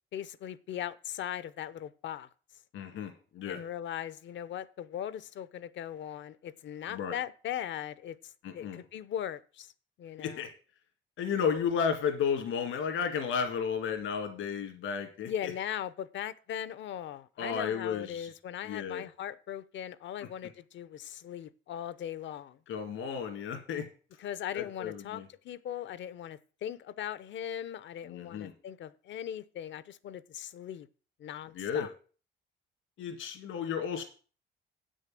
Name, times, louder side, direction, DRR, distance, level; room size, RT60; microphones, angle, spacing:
voice 1, 0.1-2.3 3.5-8.2 8.5-9.7 10.0-10.5 15.3-22.6 24.2-30.9 31.2-31.9, left 10 dB, 65° left, 0.7 m, -39 dB
voice 2, 2.7-3.6 6.9-7.2 8.4-8.8 10.2-10.5 11.2-15.5 17.4-18.3 18.6-19.0 22.7-23.9 24.5-25.3 28.0-28.5 31.5-31.9 33.0-34.0, left 7 dB, 85° left, 2.2 m, -33 dB
8.2 x 6.5 x 7.5 m
cardioid pair, 90°, 20 cm